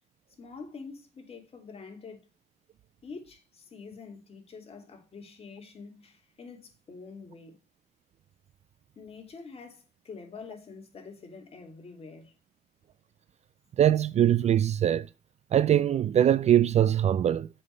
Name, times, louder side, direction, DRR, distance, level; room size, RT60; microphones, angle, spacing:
voice 1, 0.4-2.3 3.0-7.6 9.0-12.3, left 4 dB, 35° left, 3.1 m, -46 dB
voice 2, 13.8-15.1 15.5-17.5, right 10 dB, 40° right, 0.4 m, -22 dB
7.5 x 6.4 x 5.3 m
cardioid pair, 110°, 17 cm